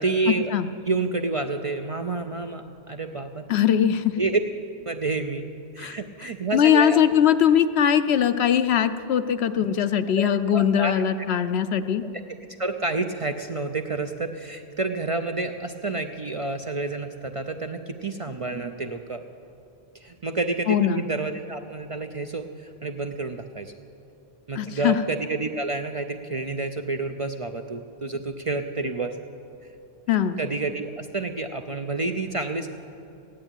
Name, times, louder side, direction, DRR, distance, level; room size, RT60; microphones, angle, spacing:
voice 1, 0.0-0.5 0.9-3.5 4.2-4.4 4.9-5.5 5.7-7.1 10.2-11.0 12.6-19.2 20.0-23.7 24.5-29.1 30.1-32.7, right 3 dB, 40° right, 6 dB, 0.5 m, -29 dB
voice 2, 3.5-4.1 5.8-6.0 6.5-12.0 20.7-21.1 24.6-25.0 30.1-30.4, left 9 dB, 75° left, 10 dB, 0.9 m, -21 dB
15.5 x 10.5 x 9.0 m, 2.7 s
omnidirectional pair, 1.1 m